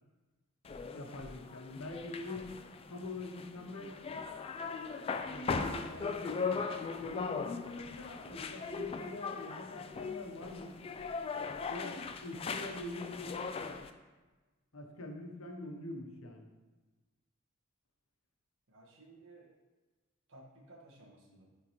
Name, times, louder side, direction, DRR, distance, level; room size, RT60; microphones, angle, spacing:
sound 1, 0.6-13.9, left 4 dB, 30° left, 0.3 m, -39 dB
voice 1, 0.9-2.5 2.9-4.0 5.3-6.6 7.0-10.8 11.7-13.6 14.7-16.5, left 2 dB, 90° left, 3 dB, 0.9 m, -44 dB
voice 2, 18.7-19.5 20.3-21.5, right 2 dB, 65° right, -1 dB, 1.3 m, -57 dB
9.5 x 3.6 x 3.0 m, 1.2 s
head